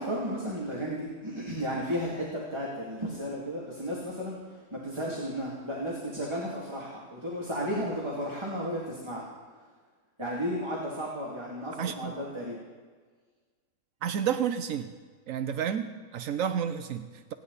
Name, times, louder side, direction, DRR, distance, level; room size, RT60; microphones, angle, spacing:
voice 1, 0.0-9.3 10.2-12.6, equal, 20° right, -4 dB, 2.6 m, -34 dB
voice 2, 11.8-12.1 14.0-14.9 15.3-17.3, right 8 dB, 80° right, 9 dB, 1.1 m, -31 dB
29.5 x 10.5 x 4.1 m, 1.5 s
omnidirectional pair, 1.4 m